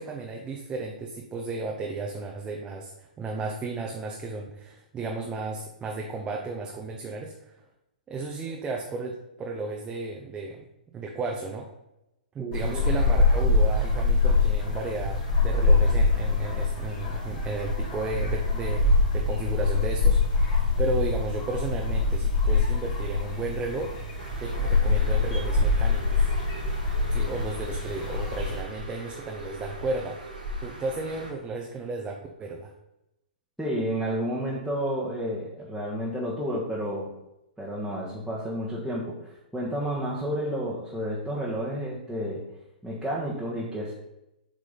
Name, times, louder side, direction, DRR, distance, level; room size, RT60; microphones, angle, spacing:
voice 1, 0.0-7.6 8.1-10.6 10.9-11.7 12.3-23.9 24.4-26.3 27.1-30.2 30.6-32.7, right 3 dB, 20° right, 0 dB, 0.8 m, -34 dB
voice 2, 12.4-12.8 33.6-37.1 37.6-42.4 42.8-43.9, equal, ahead, -8 dB, 1.4 m, -31 dB
sound 1, 12.5-28.6, left 3 dB, 40° left, 2.8 m, -24 dB
Bird, 24.2-31.3, right 1 dB, 85° right, 2.4 m, -40 dB
7.7 x 4.8 x 3.9 m, 0.89 s
figure-of-eight pair, 115°, 5 cm